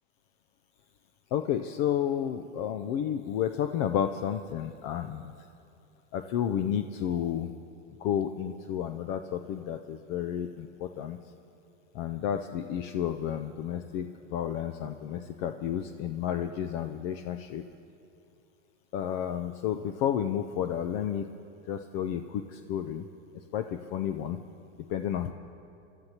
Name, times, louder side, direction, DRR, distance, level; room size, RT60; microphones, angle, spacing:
voice 1, 1.3-5.3 6.1-7.5 8.0-11.2 11.9-17.6 18.9-21.3 21.7-23.1 23.5-24.4 24.9-25.3, left 9 dB, 50° left, 8 dB, 0.6 m, -31 dB
25.0 x 13.5 x 2.9 m, 2.7 s
hypercardioid pair, 105°, 37 cm